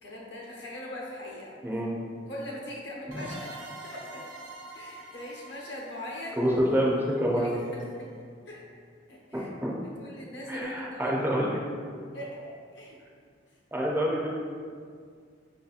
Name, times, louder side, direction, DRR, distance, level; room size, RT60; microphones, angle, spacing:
voice 1, 0.0-1.5 2.3-4.2 4.7-6.4 7.3-8.1 8.5-8.6 9.1-9.5 10.0-11.1 12.1-13.0, left 1 dB, 70° left, -3 dB, 0.8 m, -41 dB
voice 2, 1.6-1.9 6.4-7.5 9.3-9.7 10.5-11.6 13.7-14.3, equal, 10° right, -3 dB, 0.4 m, -27 dB
sound 1, 3.1-7.6, right 2 dB, 85° right, 0.6 m, -46 dB
5.1 x 2.7 x 2.4 m, 2.1 s
head